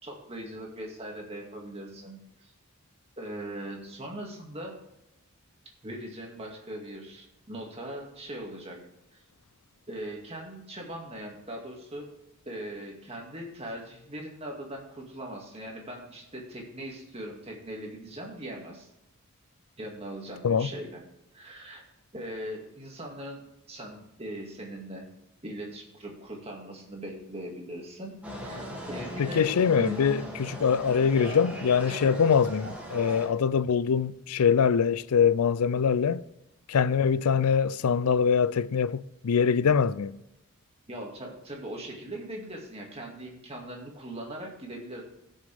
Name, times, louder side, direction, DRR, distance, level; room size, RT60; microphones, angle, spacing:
voice 1, 0.0-2.5 3.2-4.8 5.8-8.8 9.9-12.1 12.5-18.9 19.8-21.0 21.3-21.8 22.1-25.1 25.4-30.0 31.9-32.2 40.9-45.0, right 1 dB, 25° right, 2.1 m, -40 dB
sound 1, 28.2-33.3, equal, 5° right, 2.3 m, -38 dB
voice 2, 29.2-36.2 36.7-40.2, left 6 dB, 85° left, 0.4 m, -24 dB
16.5 x 6.5 x 3.5 m
head